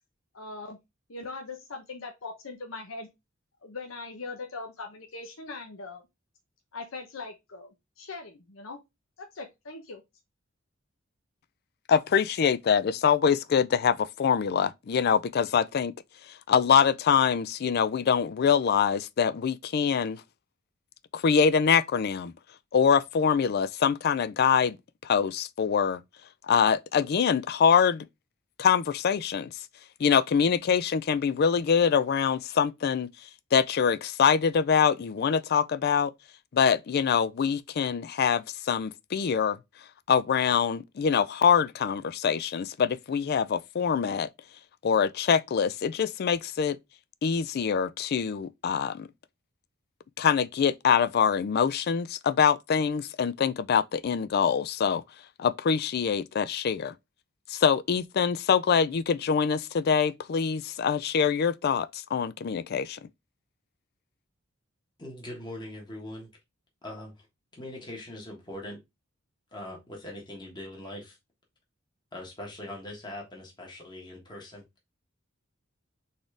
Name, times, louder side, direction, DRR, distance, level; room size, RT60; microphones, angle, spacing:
voice 1, 0.3-0.8 1.1-3.1 3.6-6.0 6.7-8.8 9.2-10.0, left 3 dB, 80° left, 0.9 m, -40 dB
voice 2, 11.9-15.9 16.3-20.2 21.1-22.3 22.7-24.8 25.0-26.0 26.5-28.0 28.6-29.5 30.0-33.1 33.5-36.1 36.5-39.6 40.1-44.3 44.8-46.8 47.2-49.1 50.2-55.0 55.4-56.9 57.5-63.0, left 7 dB, 50° left, 0.4 m, -24 dB
voice 3, 65.0-66.3 66.8-67.3 67.5-68.8 69.5-71.2 72.1-74.6, left 1 dB, 20° left, 1.4 m, -41 dB
4.2 x 3.7 x 3.3 m
head